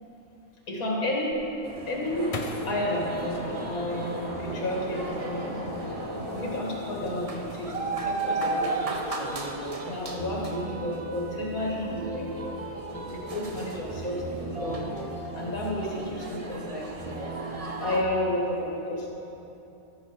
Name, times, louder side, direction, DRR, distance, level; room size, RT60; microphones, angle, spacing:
voice 1, 0.7-1.4 1.9-2.3 2.7-5.6 6.3-9.0 9.8-12.5 12.8-14.9 15.3-17.1 17.6-19.1, left 1 dB, 85° left, -3 dB, 2.2 m, -31 dB
sound 1, 1.3-4.4 4.9-5.7 6.0-6.4, left 3 dB, 45° left, 0.5 m, -41 dB
sound 2, 1.6-18.0, right 2 dB, 35° right, 0.7 m, -35 dB
sound 3, 1.9-8.4, equal, 5° left, 2.2 m, -39 dB
14.0 x 6.2 x 5.0 m, 2.9 s
omnidirectional pair, 1.5 m